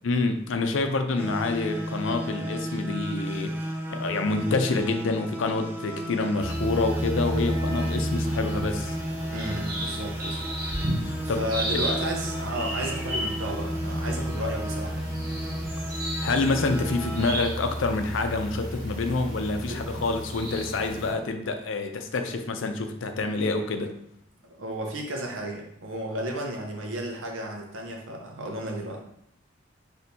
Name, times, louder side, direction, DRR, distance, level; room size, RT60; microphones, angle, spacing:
voice 1, 0.0-3.6 3.9-9.0 11.0-11.4 11.7-11.8 16.2-23.9, left 3 dB, 80° left, 6 dB, 0.5 m, -27 dB
violin E'ish, 1.2-17.3, equal, 10° right, 0.4 m, -34 dB
sound 1, 6.4-21.1, equal, 45° right, 1.2 m, -32 dB
voice 2, 9.3-10.4 11.2-15.1 19.7-19.8 24.4-29.0, right 1 dB, 90° right, 1 dB, 0.8 m, -33 dB
4.3 x 3.4 x 2.7 m, 0.73 s
head